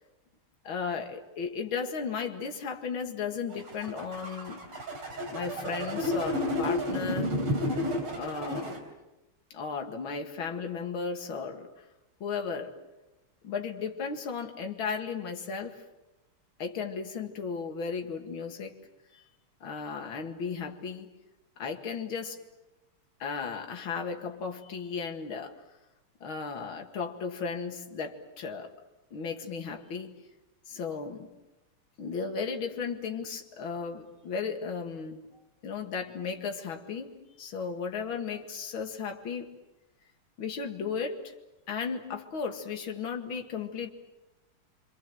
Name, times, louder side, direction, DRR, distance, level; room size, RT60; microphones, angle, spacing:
voice 1, 0.6-4.6 5.3-7.3 8.1-8.8 9.5-11.9 12.2-12.7 13.4-15.8 16.6-18.8 19.1-19.2 19.6-21.1 21.6-22.4 23.2-25.6 26.2-28.7 29.1-30.1 30.7-31.3 32.0-35.3 35.6-37.1 37.4-39.5 40.4-41.4 41.7-43.9, left 5 dB, 65° left, 4 dB, 2.8 m, -35 dB
sound 1, 3.5-8.8, left 1 dB, 90° right, 4.6 m, -31 dB
27.0 x 25.5 x 7.8 m, 0.98 s
omnidirectional pair, 2.4 m